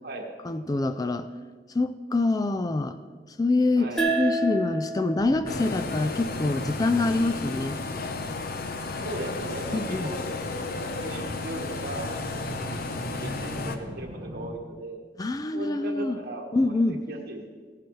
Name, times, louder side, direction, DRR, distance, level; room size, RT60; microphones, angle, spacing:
voice 1, 0.4-1.3 1.7-3.0 3.4-7.8 9.7-10.1 15.2-16.2 16.5-17.0, left 2 dB, 20° left, 11 dB, 0.3 m, -25 dB
voice 2, 3.8-4.1 9.0-10.4 10.7-12.5 13.1-15.0 15.5-17.4, right 1 dB, 60° right, 1 dB, 1.6 m, -37 dB
sound 1, 4.0-7.2, right 2 dB, 5° left, 1.3 m, -31 dB
sound 2, 5.2-14.5, equal, 25° right, 1.3 m, -42 dB
sound 3, 5.5-13.8, left 3 dB, 55° left, 0.7 m, -33 dB
16.0 x 10.5 x 3.2 m, 1.5 s
head